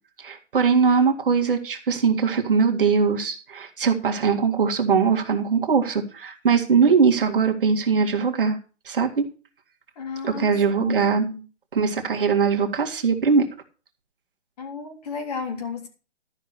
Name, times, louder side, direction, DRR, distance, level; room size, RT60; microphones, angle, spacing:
voice 1, 0.2-8.6 8.9-9.3 10.2-11.3 11.7-13.5, right 5 dB, 50° right, 3 dB, 2.0 m, -21 dB
voice 2, 10.0-10.9 11.2-11.4 14.6-15.9, left 5 dB, 35° left, 2 dB, 3.3 m, -33 dB
13.0 x 5.8 x 6.7 m, 0.35 s
hypercardioid pair, 165°, 35 cm